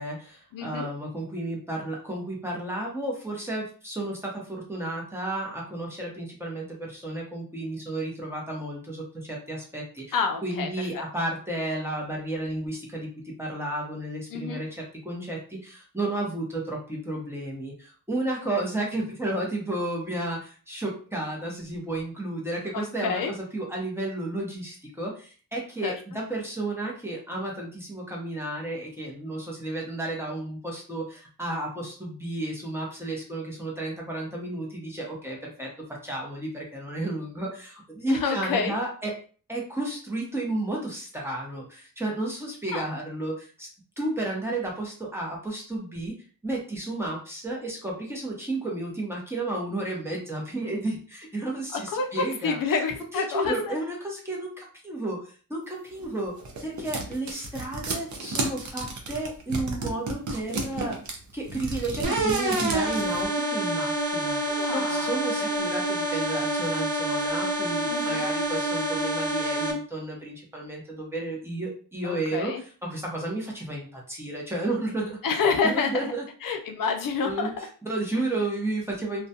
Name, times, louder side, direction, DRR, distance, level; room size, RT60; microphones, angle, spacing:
voice 1, 0.0-10.1 10.4-23.2 23.5-35.7 36.0-39.1 39.5-43.7 44.0-46.1 46.4-52.6 53.2-56.3 56.6-61.0 61.3-75.2 75.6-76.2 77.2-77.5 77.8-79.3, right 2 dB, 5° right, -3 dB, 0.8 m, -32 dB
voice 2, 0.5-0.9 10.1-11.0 14.3-14.6 22.7-23.3 25.8-26.0 38.1-38.7 42.7-42.8 51.7-53.8 64.4-65.7 67.9-68.3 72.0-72.6 75.2-76.1 76.4-77.7, left 5 dB, 65° left, 4 dB, 0.5 m, -28 dB
sound 1, 56.0-63.2, right 3 dB, 55° right, 0.7 m, -33 dB
sound 2, 62.0-69.7, right 1 dB, 80° right, 0.9 m, -27 dB
2.3 x 2.2 x 2.7 m, 0.40 s
wide cardioid pair, 125°, 35 cm